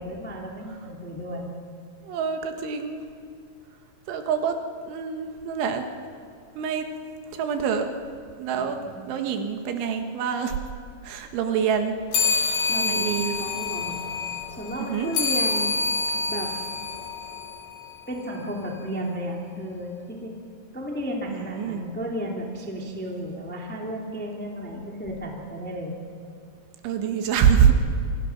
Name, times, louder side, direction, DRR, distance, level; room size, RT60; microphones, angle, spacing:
voice 1, 0.0-1.5 8.5-9.0 12.7-13.9 14.6-15.8 16.3-16.5 18.1-20.4 20.7-25.9, equal, 5° left, -1 dB, 1.5 m, -33 dB
voice 2, 2.1-3.0 4.1-4.6 4.8-5.8 6.6-6.9 7.4-7.9 8.4-10.6 11.0-11.9 12.7-13.3 14.9-15.1 21.3-21.8 26.8-27.7, right 8 dB, 80° right, 5 dB, 3.9 m, -25 dB
sound 1, 12.1-18.0, left 4 dB, 75° left, 6.3 m, -27 dB
27.5 x 25.0 x 6.0 m, 2.4 s
omnidirectional pair, 5.4 m